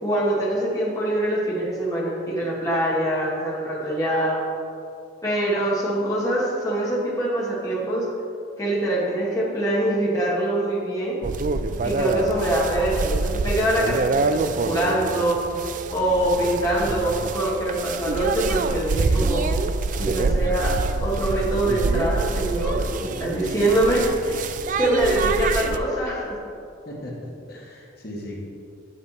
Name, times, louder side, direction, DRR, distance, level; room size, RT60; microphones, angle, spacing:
voice 1, 0.0-4.4 5.2-8.1 8.6-11.2 11.8-14.0 14.3-15.4 15.9-19.5 20.0-20.7 21.0-24.4 24.8-26.4, right 1 dB, 15° left, -6 dB, 2.0 m, -24 dB
sound 1, 11.2-25.8, right 3 dB, 40° right, 0.3 m, -26 dB
voice 2, 26.8-28.4, left 1 dB, 50° left, -3 dB, 1.7 m, -37 dB
9.9 x 6.4 x 4.3 m, 2.4 s
head